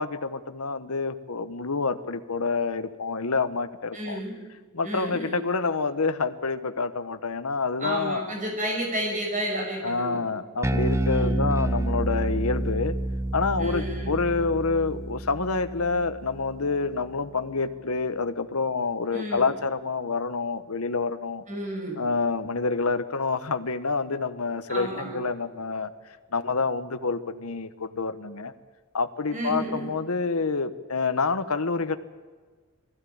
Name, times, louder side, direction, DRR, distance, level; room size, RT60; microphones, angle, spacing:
voice 1, 0.0-4.2 4.7-8.3 9.8-13.0 13.3-21.4 22.0-25.9 26.3-28.5 28.9-32.0, left 4 dB, 80° left, 11 dB, 1.1 m, -27 dB
voice 2, 3.9-4.4 4.8-5.4 7.8-10.2 11.1-11.5 13.6-14.2 19.1-19.5 21.5-22.0 24.7-25.2 29.3-29.9, right 1 dB, 35° right, 0 dB, 6.2 m, -31 dB
Bass guitar, 10.6-17.1, right 1 dB, 15° right, 0.7 m, -29 dB
21.0 x 15.0 x 8.6 m, 1.5 s
head